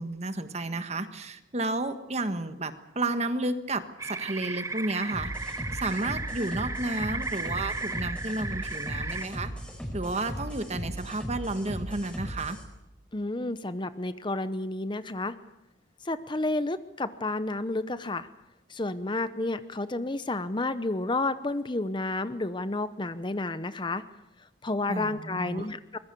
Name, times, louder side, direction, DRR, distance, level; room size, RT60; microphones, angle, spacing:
voice 1, 0.0-5.5 5.7-9.5 9.9-12.6 24.9-25.7, right 2 dB, 35° right, 10 dB, 1.5 m, -32 dB
sound 1, 4.0-9.3, right 3 dB, 15° right, 0.8 m, -35 dB
sound 2, 5.1-12.6, equal, 5° left, 5.3 m, -37 dB
voice 2, 13.1-15.3 16.0-18.3 18.7-24.0 24.6-26.0, left 2 dB, 25° left, 13 dB, 0.8 m, -31 dB
24.5 x 21.5 x 6.9 m, 0.88 s
head